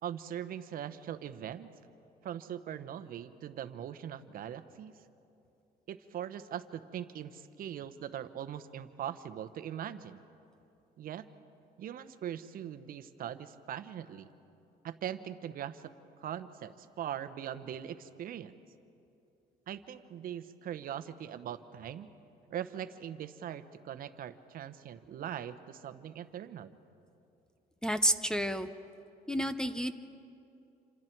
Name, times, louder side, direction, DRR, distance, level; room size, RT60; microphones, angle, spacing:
voice 1, 0.0-1.7 2.2-4.9 5.9-10.2 11.0-11.3 11.8-14.3 14.8-15.9 16.2-18.5 19.7-22.1 22.5-26.7, right 10 dB, 60° right, 12 dB, 1.0 m, -41 dB
voice 2, 27.8-28.7 29.3-29.9, equal, 5° left, 7 dB, 0.7 m, -30 dB
27.5 x 26.5 x 4.6 m, 2.8 s
cardioid pair, 110°, 17 cm